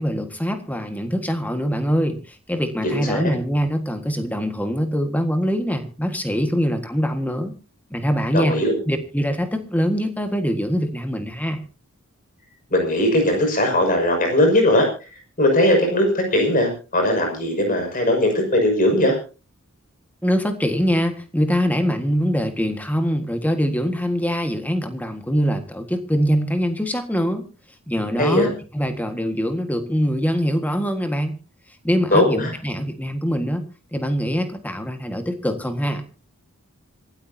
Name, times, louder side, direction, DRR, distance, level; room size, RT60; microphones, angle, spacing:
voice 1, 0.0-7.5 7.9-8.6 8.9-11.6 20.2-27.4 27.9-31.4 31.8-33.6 33.9-36.0, equal, 5° left, 7 dB, 1.6 m, -23 dB
voice 2, 2.8-3.3 8.3-8.7 12.7-14.8 15.4-19.2 28.2-28.5 32.1-32.5, left 1 dB, 40° left, 3 dB, 6.2 m, -19 dB
26.5 x 13.0 x 2.8 m, 0.34 s
head